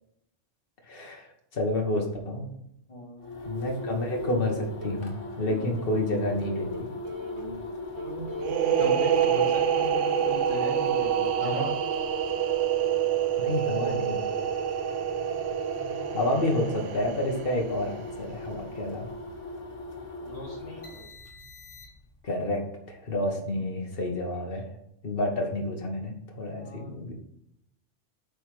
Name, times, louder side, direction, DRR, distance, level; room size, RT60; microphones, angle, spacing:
voice 1, 0.9-1.2 1.5-2.5 3.4-6.9 13.4-14.2 16.1-19.1 22.2-22.6 22.9-24.6 25.0-27.1, left 1 dB, 50° left, 1 dB, 1.7 m, -29 dB
voice 2, 2.9-3.3 8.8-11.8 15.7-16.3 20.2-20.9 23.5-23.6 26.5-27.0, left 1 dB, 30° left, -12 dB, 3.6 m, -38 dB
sound 1, 3.2-22.2, left 2 dB, 90° left, 1.8 m, -39 dB
sound 2, 4.2-5.0 5.5-7.7 8.0-8.5, equal, 65° right, 1.7 m, -39 dB
sound 3, 8.4-17.9, right 9 dB, 85° right, 1.0 m, -27 dB
8.3 x 5.4 x 5.0 m, 0.78 s
omnidirectional pair, 1.2 m